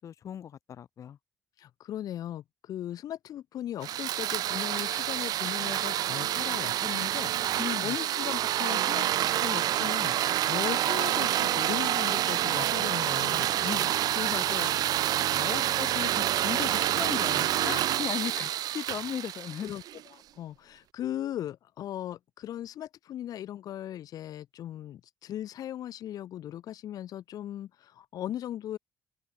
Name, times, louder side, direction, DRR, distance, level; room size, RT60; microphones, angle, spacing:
voice 1, 0.0-1.2 7.6-8.0 13.6-19.7, left 9 dB, 55° left, 5.2 m, -37 dB
voice 2, 1.6-10.2 10.5-13.5 15.5-15.7 17.6-18.0 19.6-19.8 20.1-28.8, left 11 dB, 75° left, 4.5 m, -38 dB
sound 1, 3.8-20.0, right 13 dB, 85° right, 3.6 m, -28 dB
open air
cardioid pair, 135°, 6 cm